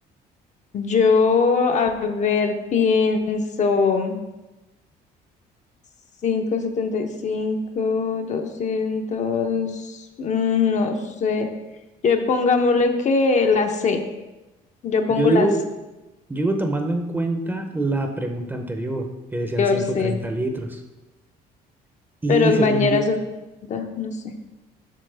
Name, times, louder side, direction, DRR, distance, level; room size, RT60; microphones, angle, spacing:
voice 1, 0.7-4.2 6.2-11.5 12.0-14.0 14.8-15.5 19.6-20.2 22.3-23.2 23.6-24.3, left 4 dB, 45° left, 5 dB, 0.7 m, -21 dB
voice 2, 15.1-15.6 16.3-20.8 22.2-23.0, right 2 dB, 10° right, 5 dB, 0.7 m, -24 dB
7.5 x 6.0 x 3.4 m, 1.1 s
cardioid pair, 110°, 17 cm